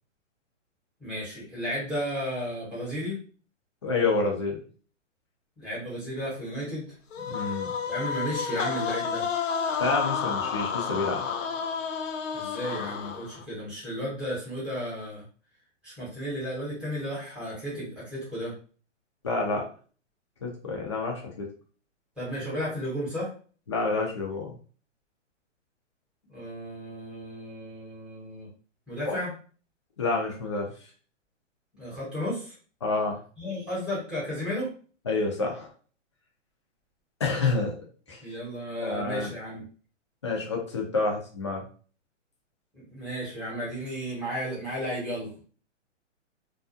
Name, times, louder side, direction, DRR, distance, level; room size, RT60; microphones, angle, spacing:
voice 1, 1.0-3.2 5.6-6.9 7.9-9.3 12.3-15.2 15.8-18.5 22.2-23.3 26.3-28.5 28.9-29.3 31.7-32.5 33.4-34.7 38.2-39.6 42.7-45.3, equal, 5° right, -9 dB, 0.9 m, -33 dB
voice 2, 3.8-4.6 7.2-7.7 9.8-11.2 19.2-19.7 20.4-21.5 23.7-24.5 29.1-29.2 30.0-30.7 32.8-33.2 35.1-35.7 37.2-38.2 38.8-39.3 40.2-41.6, left 3 dB, 25° left, -1 dB, 0.4 m, -28 dB
sound 1, 7.1-13.4, left 6 dB, 80° left, 0.6 m, -31 dB
2.4 x 2.3 x 2.5 m, 0.40 s
hypercardioid pair, 150°, 38 cm